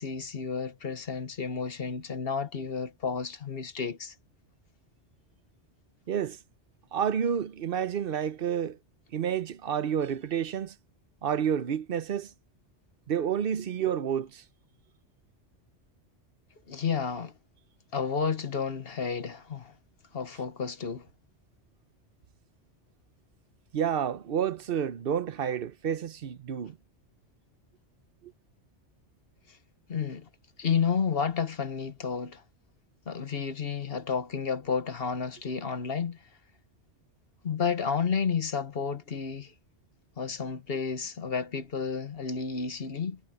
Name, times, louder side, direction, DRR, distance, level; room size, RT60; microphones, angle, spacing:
voice 1, 0.0-4.1 16.7-17.3 17.9-19.7 20.1-21.1 29.5-29.6 29.9-30.3 30.6-32.4 33.0-36.2 37.4-39.5 40.2-43.2, left 6 dB, 55° left, 1.4 m, -31 dB
voice 2, 6.1-6.4 6.9-8.8 9.1-10.7 11.2-12.3 13.1-14.4 23.7-26.8, right 8 dB, 55° right, 0.9 m, -29 dB
omnidirectional pair, 1.2 m